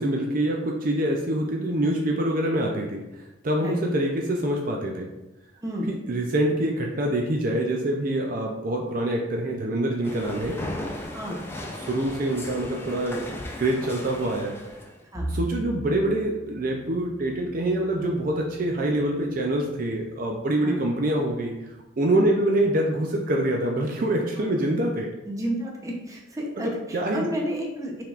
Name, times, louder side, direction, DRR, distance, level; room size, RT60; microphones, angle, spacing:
voice 1, 0.0-3.0 3.4-5.1 5.9-10.6 11.9-13.2 13.6-14.6 15.3-25.1 26.6-27.3, right 1 dB, 50° right, 0 dB, 0.5 m, -25 dB
sound 1, 10.0-15.0, left 1 dB, 15° left, 0.4 m, -36 dB
voice 2, 11.0-11.4 15.1-15.3 20.6-20.8 22.1-22.3 24.4-24.6 25.2-28.0, equal, 20° right, -1 dB, 0.8 m, -31 dB
Bowed string instrument, 15.1-19.5, right 1 dB, 35° left, 0.8 m, -38 dB
5.7 x 3.4 x 2.4 m, 1.0 s
head